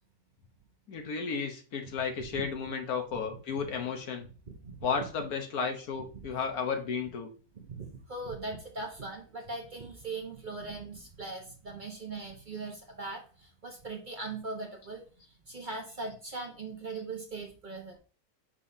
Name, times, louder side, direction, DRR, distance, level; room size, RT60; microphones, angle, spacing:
voice 1, 0.9-4.3 4.8-7.3, left 5 dB, 75° left, 4 dB, 1.5 m, -33 dB
voice 2, 4.5-4.9 7.5-18.0, right 3 dB, 35° right, 2 dB, 1.0 m, -40 dB
6.8 x 5.6 x 2.7 m, 0.38 s
omnidirectional pair, 1.6 m